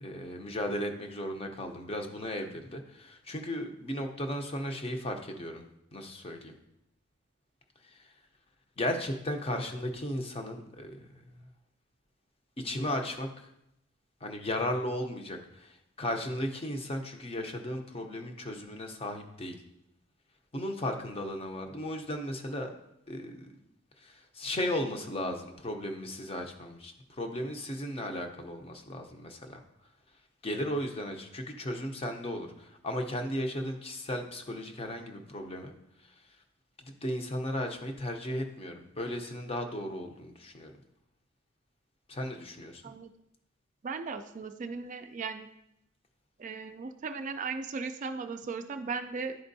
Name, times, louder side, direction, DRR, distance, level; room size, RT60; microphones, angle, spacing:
voice 1, 0.0-5.6 5.9-6.5 7.8-8.1 8.8-11.0 11.3-11.4 12.6-13.5 14.2-19.6 20.5-22.7 23.1-23.5 24.0-29.6 30.4-35.7 36.0-36.1 36.8-40.7 42.1-42.8, left 1 dB, 30° left, 5 dB, 0.7 m, -35 dB
voice 2, 43.8-45.5 46.4-49.4, right 4 dB, 35° right, 8 dB, 0.3 m, -37 dB
10.5 x 4.3 x 2.7 m, 0.81 s
head